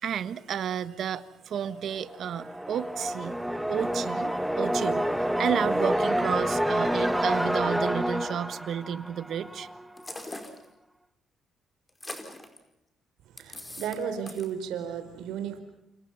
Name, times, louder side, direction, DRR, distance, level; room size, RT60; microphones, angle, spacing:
voice 1, 0.0-9.7, right 9 dB, 65° right, 1.5 m, -32 dB
sound 1, 2.1-9.8, equal, 5° right, 1.3 m, -28 dB
sound 2, 10.0-10.6 11.9-12.6 13.4-14.0 14.3-14.5, left 1 dB, 15° left, 4.8 m, -41 dB
voice 2, 13.3-15.6, right 8 dB, 90° right, 4.1 m, -34 dB
29.5 x 28.5 x 5.8 m
cardioid pair, 90°, 0 cm